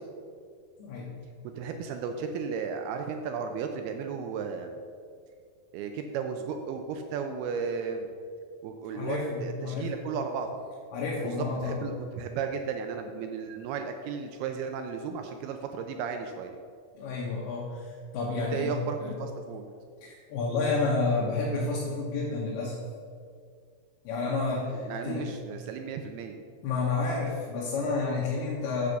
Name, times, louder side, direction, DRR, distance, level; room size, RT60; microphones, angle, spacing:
voice 1, 0.8-1.1 8.9-9.9 10.9-11.8 17.0-18.8 19.0-19.1 20.0-22.7 24.0-25.3 26.6-28.9, left 3 dB, 75° left, -5 dB, 2.9 m, -30 dB
voice 2, 1.5-4.8 5.7-8.1 8.6-10.5 11.2-16.5 18.4-19.7 24.3-26.4, right 6 dB, 80° right, 5 dB, 2.4 m, -34 dB
8.4 x 4.9 x 6.7 m, 2.2 s
omnidirectional pair, 4.8 m